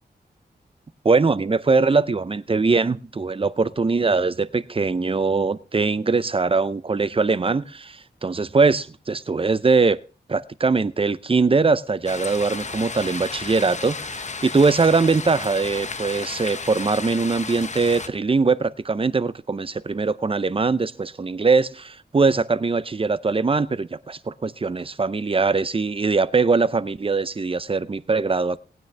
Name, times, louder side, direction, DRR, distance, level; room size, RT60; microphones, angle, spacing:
voice 1, 1.0-10.0 10.3-28.6, right 4 dB, 30° right, 0.6 m, -21 dB
sound 1, 12.1-18.1, left 4 dB, 40° left, 0.8 m, -33 dB
18.5 x 9.2 x 3.3 m
wide cardioid pair, 85°, 18 cm